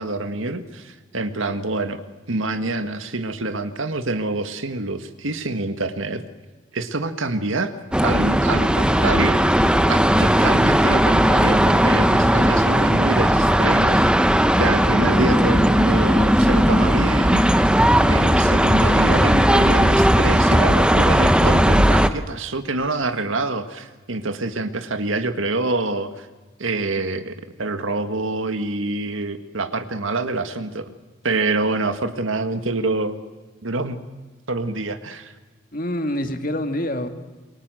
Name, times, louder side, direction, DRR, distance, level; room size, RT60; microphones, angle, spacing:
voice 1, 0.0-2.0 2.3-6.2 6.7-7.7 8.0-9.4 9.9-14.0 14.6-17.7 18.1-26.3 26.6-30.9 31.2-33.2 33.6-34.0 34.5-35.3, right 2 dB, 85° right, 9 dB, 1.8 m, -26 dB
sound 1, 7.9-22.1, equal, 5° right, 0.8 m, -17 dB
voice 2, 14.9-15.5 35.7-37.1, left 1 dB, 45° left, 7 dB, 2.1 m, -26 dB
27.5 x 23.0 x 7.8 m, 1.3 s
head